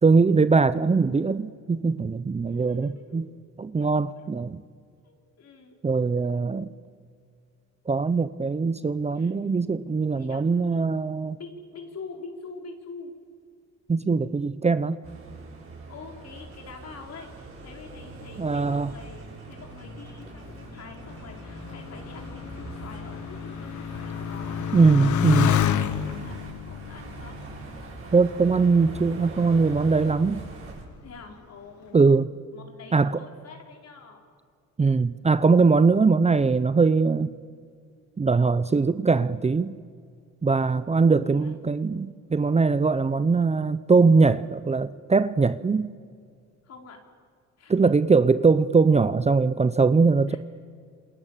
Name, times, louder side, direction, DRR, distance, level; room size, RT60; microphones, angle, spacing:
voice 1, 0.0-3.3 3.6-4.6 5.8-6.7 7.9-11.4 13.9-15.0 18.4-18.9 24.7-25.5 28.1-30.5 31.9-32.3 32.9-33.2 34.8-37.3 38.2-39.8 40.4-45.9 47.7-50.4, right 4 dB, 20° right, 14 dB, 0.7 m, -21 dB
voice 2, 2.4-3.2 3.7-3.9 4.2-4.3 5.0-5.8 9.2-9.3 10.1-10.4 10.7-10.8 11.4-13.1 15.9-26.4 26.7-27.4 31.0-32.0 32.5-34.2 40.9-41.5 46.6-47.0 47.6-47.9 50.3-50.4, left 4 dB, 60° left, 2 dB, 4.6 m, -45 dB
sound 1, 15.0-30.8, right 3 dB, 45° right, 6.8 m, -42 dB
Motorcycle, 19.6-28.6 29.3-29.9, left 9 dB, 75° left, 1.3 m, -30 dB
27.5 x 27.0 x 7.5 m, 2.2 s
cardioid pair, 90°, 30 cm